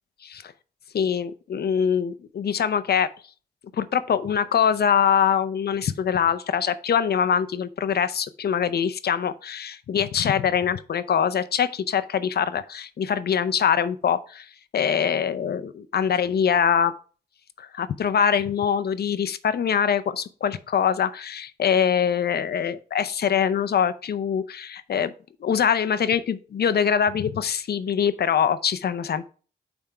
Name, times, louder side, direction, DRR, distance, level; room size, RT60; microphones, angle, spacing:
voice 1, 0.2-0.5 0.9-3.1 3.7-16.9 17.6-25.1 25.4-29.3, left 8 dB, 65° left, 14 dB, 0.6 m, -23 dB
8.8 x 3.6 x 4.3 m, 0.39 s
cardioid pair, 70°, 18 cm